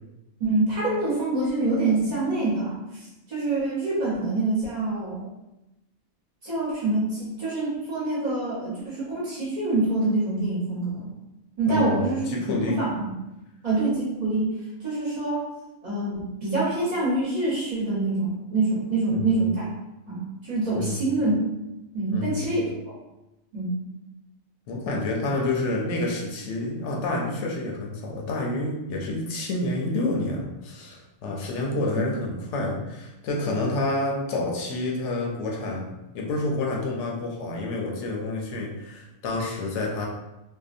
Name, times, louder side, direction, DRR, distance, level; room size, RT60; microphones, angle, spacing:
voice 1, 0.4-5.3 6.4-11.1 11.6-12.3 12.7-13.1 13.6-15.4 15.8-19.7 20.1-21.3 21.9-22.7 23.5-23.8, right 2 dB, 40° right, -8 dB, 0.9 m, -26 dB
voice 2, 11.7-12.8 19.1-19.4 20.7-21.0 22.1-22.4 24.7-35.9 36.1-40.1, left 2 dB, 75° left, -1 dB, 0.9 m, -28 dB
2.6 x 2.2 x 2.5 m, 0.96 s
omnidirectional pair, 1.2 m